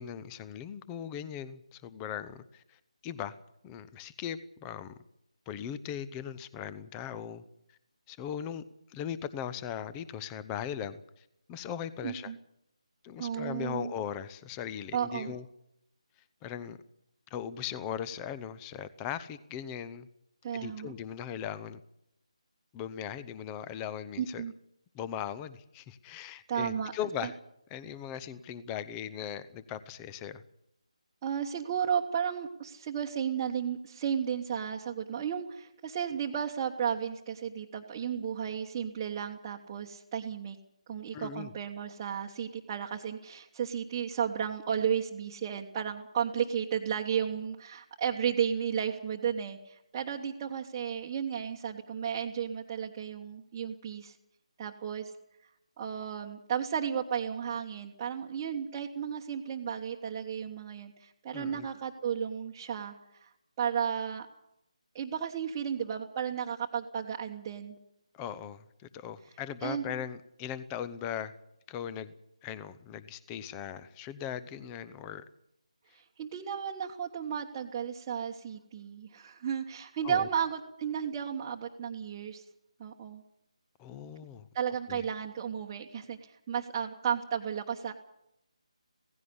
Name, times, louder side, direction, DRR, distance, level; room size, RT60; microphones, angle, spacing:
voice 1, 0.0-3.4 3.6-5.0 5.5-7.4 8.1-8.6 8.9-12.3 13.0-15.4 16.4-16.8 17.3-20.1 20.5-21.8 22.7-24.4 24.9-27.4 27.7-30.4 41.1-41.5 61.3-61.7 68.1-71.3 71.7-72.1 72.4-75.2 80.0-80.3 83.8-84.5 84.9-85.0, left 9 dB, 15° left, 16 dB, 0.7 m, -39 dB
voice 2, 12.0-12.4 13.2-13.9 14.9-15.3 20.4-20.9 24.2-24.5 26.5-26.9 27.2-27.3 31.2-40.6 40.9-54.1 54.6-55.1 55.8-62.9 63.2-63.3 63.6-64.3 64.9-67.8 69.6-69.8 75.9-82.4 82.8-83.2 84.5-87.9, right 8 dB, 20° right, -3 dB, 1.2 m, -33 dB
17.0 x 16.0 x 9.7 m, 0.80 s
figure-of-eight pair, 155°, 3 cm